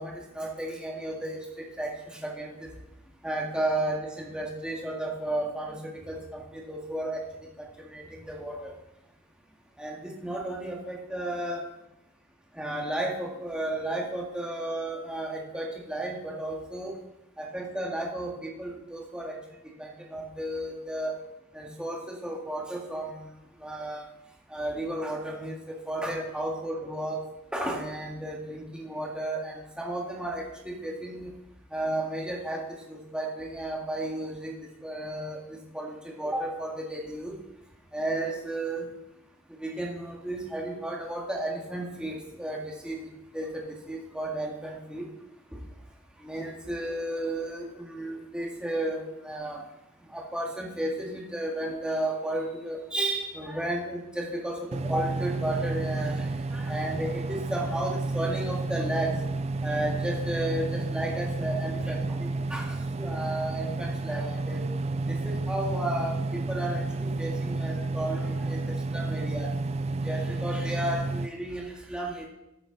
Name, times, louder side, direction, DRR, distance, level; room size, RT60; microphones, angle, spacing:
voice 1, 0.0-2.7 3.2-7.3 7.6-8.7 9.8-11.6 12.5-16.9 17.4-19.4 19.6-21.1 21.5-23.3 23.6-24.1 24.5-27.2 27.5-31.3 31.7-37.4 37.9-38.9 39.5-45.1 45.5-45.6 46.2-49.6 50.1-59.2 59.6-64.6 65.0-69.5 70.0-72.3, right 1 dB, 5° right, -1 dB, 1.9 m, -33 dB
sound 1, 54.7-71.3, right 3 dB, 30° right, 0.4 m, -31 dB
14.5 x 8.7 x 4.1 m, 0.89 s
head